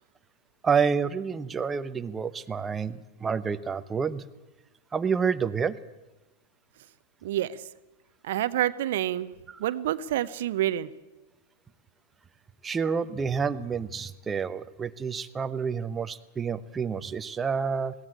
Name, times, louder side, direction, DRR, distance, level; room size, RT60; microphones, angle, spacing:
voice 1, 0.6-4.2 4.9-5.8 9.5-9.6 12.6-17.9, right 6 dB, 20° right, 11 dB, 0.9 m, -29 dB
voice 2, 7.2-7.6 8.2-9.3 9.6-10.9, right 12 dB, 60° right, 14 dB, 0.8 m, -28 dB
21.5 x 16.5 x 8.8 m, 1.1 s
figure-of-eight pair, 95°, 0 cm